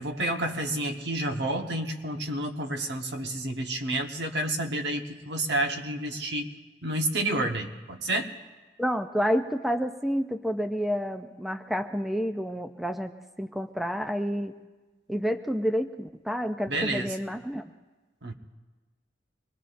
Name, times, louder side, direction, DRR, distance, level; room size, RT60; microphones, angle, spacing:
voice 1, 0.0-6.5 6.8-8.3 16.7-17.1 18.2-18.3, right 1 dB, 70° right, 4 dB, 1.2 m, -30 dB
voice 2, 8.8-13.1 13.4-14.5 15.1-17.6, equal, ahead, 7 dB, 0.4 m, -29 dB
25.5 x 20.5 x 2.5 m, 1.2 s
head